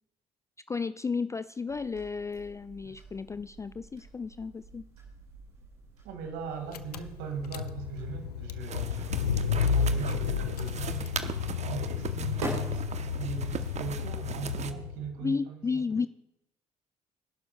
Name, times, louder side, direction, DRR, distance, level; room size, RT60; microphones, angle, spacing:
voice 1, 0.7-4.8 15.2-16.1, left 5 dB, 15° left, 14 dB, 0.3 m, -33 dB
sound 1, 1.7-14.3, right 2 dB, 80° right, 2.9 m, -46 dB
voice 2, 6.0-11.1 11.6-15.8, right 6 dB, 60° right, 6 dB, 2.0 m, -39 dB
Car / Engine, 6.4-6.5 6.7-15.1, left 6 dB, 80° left, 0.5 m, -32 dB
sound 2, 8.6-14.7, right 7 dB, 35° right, 0.9 m, -40 dB
25.5 x 11.5 x 2.3 m, 0.88 s
figure-of-eight pair, 50°, 19 cm